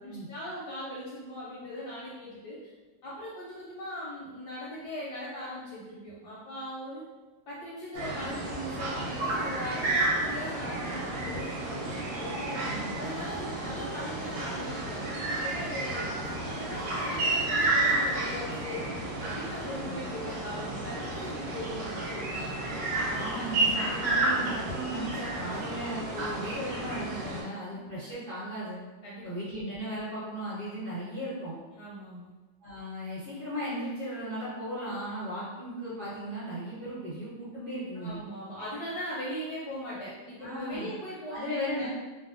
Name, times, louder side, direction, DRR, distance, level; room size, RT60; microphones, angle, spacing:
voice 1, 0.0-2.6 3.0-7.0 7.5-12.6 12.9-16.1 16.4-18.8 19.2-22.5 27.7-28.0 29.0-29.2 31.8-32.3 37.9-41.9, left 1 dB, 75° left, -6 dB, 1.0 m, -39 dB
sound 1, 8.0-27.4, right 2 dB, 85° right, 1.4 m, -31 dB
voice 2, 12.6-13.0 19.8-20.0 23.1-28.8 29.2-31.6 32.6-38.2 40.4-40.9 41.3-41.9, equal, 50° right, -10 dB, 1.3 m, -36 dB
3.2 x 2.0 x 2.4 m, 1.2 s
omnidirectional pair, 2.1 m